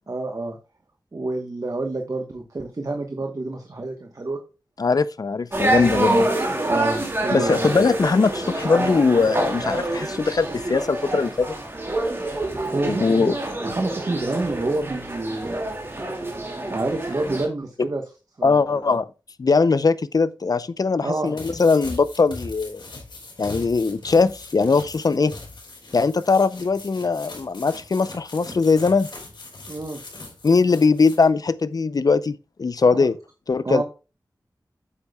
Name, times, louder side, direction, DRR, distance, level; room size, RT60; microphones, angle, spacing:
voice 1, 0.1-0.6 1.1-4.4 6.1-6.3 6.6-7.9 12.7-15.6 16.7-18.0 18.4-18.8 21.0-21.4 29.7-30.0 32.9-33.1 33.6-33.8, right 2 dB, 50° right, 1.1 m, -28 dB
voice 2, 4.8-6.2 7.3-11.6 12.9-13.3 18.4-19.1 19.4-22.8 23.4-25.3 25.9-29.1 30.4-33.2 33.5-33.8, left 4 dB, 55° left, 0.5 m, -20 dB
sound 1, 5.5-17.5, right 1 dB, 30° right, 2.3 m, -27 dB
sound 2, 21.3-31.3, left 2 dB, 85° left, 3.4 m, -40 dB
8.2 x 8.1 x 2.3 m
wide cardioid pair, 85°, 8 cm